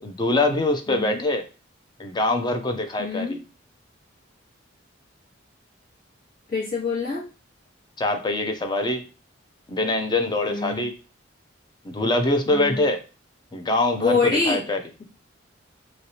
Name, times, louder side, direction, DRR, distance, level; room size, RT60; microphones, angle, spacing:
voice 1, 0.0-1.5 2.0-3.4 8.0-9.1 9.7-10.9 11.8-13.0 13.5-14.8, left 2 dB, 20° left, 6 dB, 0.5 m, -24 dB
voice 2, 0.9-1.2 3.0-3.4 6.5-7.3 10.5-10.8 12.5-12.9 14.0-14.6, left 4 dB, 50° left, -8 dB, 1.8 m, -25 dB
3.2 x 2.9 x 2.7 m, 0.33 s
head